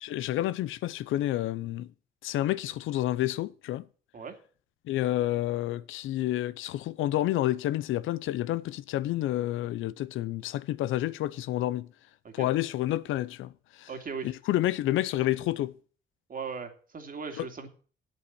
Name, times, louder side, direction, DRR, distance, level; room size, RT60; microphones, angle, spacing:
voice 1, 0.0-1.9 2.2-3.9 4.9-11.9 12.3-13.9 14.2-15.7 17.4-17.5, left 14 dB, 85° left, 0.6 m, -29 dB
voice 2, 13.9-14.3 16.3-17.7, right 5 dB, 45° right, 2.4 m, -38 dB
8.4 x 8.4 x 8.5 m
cardioid pair, 90°, 20 cm